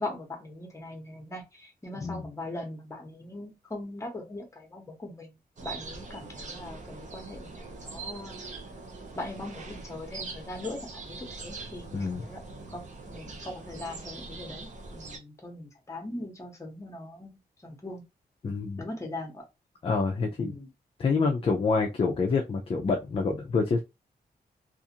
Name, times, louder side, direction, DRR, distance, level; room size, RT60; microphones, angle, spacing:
voice 1, 0.0-5.4 5.6-8.4 9.2-18.0 18.8-19.4 20.4-20.7, left 2 dB, 20° left, 0.9 m, -40 dB
sound 1, 5.6-15.2, right 3 dB, 50° right, 0.6 m, -42 dB
voice 2, 11.9-12.2 18.4-18.8 19.8-20.5 21.0-23.8, left 4 dB, 35° left, 0.4 m, -27 dB
2.5 x 2.4 x 2.7 m
wide cardioid pair, 155°, 17 cm